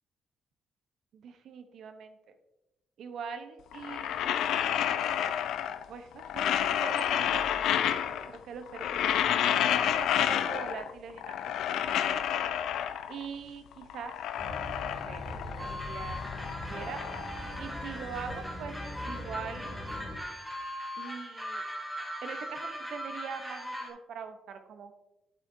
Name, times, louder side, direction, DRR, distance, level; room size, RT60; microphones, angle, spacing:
voice 1, 1.1-2.3 3.0-4.5 5.9-8.0 8.3-9.2 9.7-12.2 13.1-14.2 14.8-15.3 15.6-16.2 16.7-17.0 17.3-18.8 19.0-19.8 21.0-21.6 22.2-24.9, right 6 dB, 70° right, 8 dB, 0.9 m, -43 dB
sound 1, 3.7-5.9 6.2-8.4 8.7-10.9 11.2-13.3 13.7-15.7 16.0-18.2, left 10 dB, 80° left, 0.5 m, -30 dB
sound 2, 14.4-20.2, left 1 dB, 15° left, 2.3 m, -41 dB
sound 3, 15.6-23.9, equal, ahead, 2.0 m, -40 dB
8.9 x 8.2 x 2.7 m, 0.99 s
cardioid pair, 90°, 0 cm